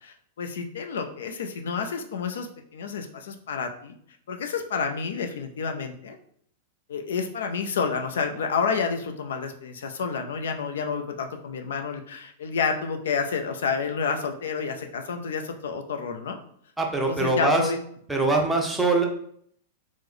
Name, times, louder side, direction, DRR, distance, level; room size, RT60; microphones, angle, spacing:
voice 1, 0.0-3.9 4.3-6.2 6.9-16.4 17.1-17.8, left 5 dB, 80° left, 5 dB, 0.4 m, -29 dB
voice 2, 16.8-17.6 18.1-19.0, right 3 dB, 5° right, 1 dB, 0.6 m, -23 dB
3.0 x 2.1 x 3.7 m, 0.64 s
hypercardioid pair, 125°, 0 cm